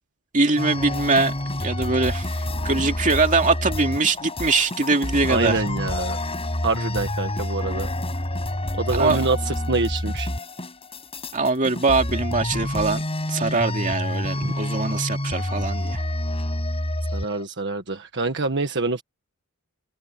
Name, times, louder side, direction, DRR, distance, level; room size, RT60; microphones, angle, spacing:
voice 1, 0.3-1.3 1.6-5.6 8.9-9.3 11.3-16.0, right 3 dB, 35° right, 2.4 m, -22 dB
sound 1, 0.6-17.4, left 1 dB, 25° left, 6.8 m, -28 dB
voice 2, 5.3-6.2 6.6-7.9 8.8-10.3 14.4-14.5 17.1-19.0, right 3 dB, 55° right, 1.5 m, -26 dB
head